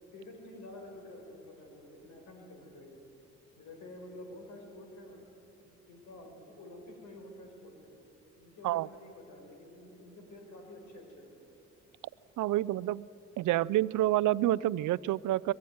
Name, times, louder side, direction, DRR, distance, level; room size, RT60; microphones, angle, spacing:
voice 1, 0.1-3.0 3.6-5.2 5.6-7.9 8.4-11.4, left 1 dB, 75° left, 3 dB, 5.3 m, -49 dB
voice 2, 12.4-13.1 13.4-15.5, right 15 dB, 75° right, 19 dB, 0.6 m, -28 dB
23.0 x 22.0 x 9.5 m, 2.9 s
cardioid pair, 90°, 30 cm